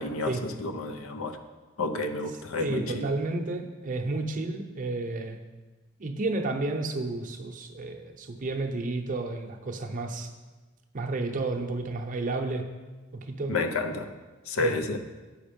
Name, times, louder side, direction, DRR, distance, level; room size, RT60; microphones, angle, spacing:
voice 1, 0.0-1.4 1.8-3.1 13.5-14.1 14.5-15.0, left 2 dB, 80° left, 7 dB, 0.6 m, -30 dB
voice 2, 2.6-5.4 6.0-10.3 10.9-12.7 13.3-13.6 14.6-14.7, right 2 dB, 40° right, 4 dB, 0.7 m, -31 dB
7.8 x 5.1 x 5.2 m, 1.2 s
head